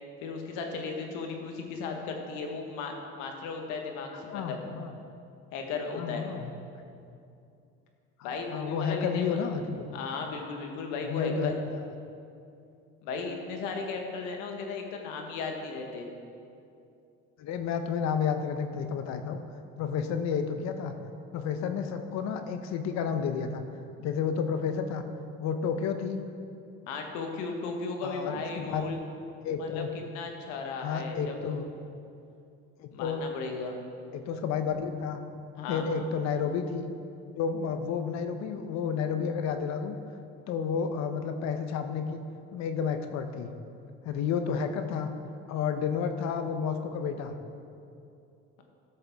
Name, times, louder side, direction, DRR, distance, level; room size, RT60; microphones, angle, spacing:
voice 1, 0.2-4.6 5.5-6.3 8.2-9.4 9.9-11.6 13.0-16.1 26.9-29.0 29.6-29.8 30.1-31.5 32.9-33.8 35.6-35.8, left 4 dB, 80° left, 3 dB, 1.4 m, -36 dB
voice 2, 4.3-5.0 5.9-6.5 8.2-9.9 11.0-11.9 17.4-19.4 19.8-21.0 21.3-23.6 24.0-25.0 25.4-26.2 28.0-28.8 29.4-29.9 30.8-31.6 32.8-33.2 34.1-35.2 35.7-36.9 37.4-40.0 40.5-42.2 42.5-43.5 44.0-45.1 45.5-47.3, left 6 dB, 65° left, 8 dB, 0.9 m, -31 dB
13.5 x 6.7 x 3.6 m, 2.6 s
supercardioid pair, 90°, 30 cm